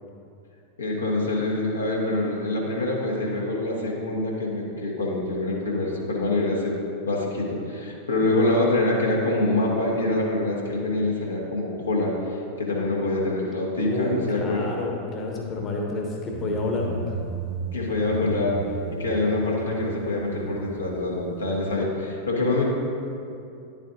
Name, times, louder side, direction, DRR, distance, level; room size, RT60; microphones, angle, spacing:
voice 1, 0.8-6.8 7.0-12.1 12.6-14.7 17.7-18.6 18.9-22.7, left 2 dB, 75° left, -3 dB, 1.3 m, -25 dB
voice 2, 13.8-17.2, left 2 dB, 30° left, 0 dB, 1.1 m, -29 dB
sound 1, 16.3-21.8, right 4 dB, 40° right, 0.6 m, -35 dB
10.0 x 7.3 x 2.6 m, 2.6 s
figure-of-eight pair, 90°, 0 cm